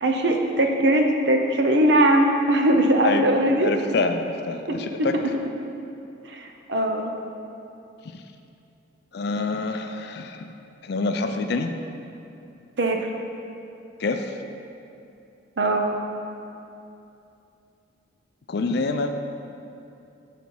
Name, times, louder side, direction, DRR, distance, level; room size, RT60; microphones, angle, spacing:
voice 1, 0.0-3.7 4.7-5.2 6.3-7.1 12.8-13.1 15.6-16.0, right 1 dB, 60° right, 3 dB, 0.6 m, -21 dB
voice 2, 3.6-5.2 9.1-10.5 10.8-11.7 14.0-14.3 18.5-19.1, left 3 dB, 55° left, 6 dB, 0.4 m, -26 dB
8.0 x 4.1 x 4.5 m, 2.7 s
head